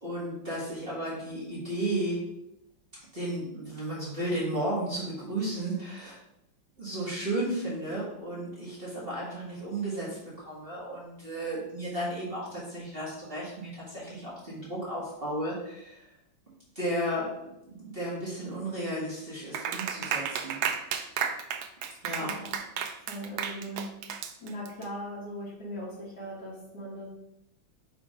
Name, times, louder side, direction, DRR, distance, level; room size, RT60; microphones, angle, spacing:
voice 1, 0.0-2.2 3.1-6.2 6.8-16.0 16.7-20.7 22.0-22.3, right 1 dB, 30° right, -7 dB, 1.7 m, -34 dB
Clapping, 19.5-24.8, right 7 dB, 85° right, 0.8 m, -33 dB
voice 2, 22.2-22.5 23.0-23.9 24.4-27.1, equal, 50° left, -5 dB, 1.8 m, -39 dB
5.1 x 3.7 x 4.9 m, 0.84 s
omnidirectional pair, 2.2 m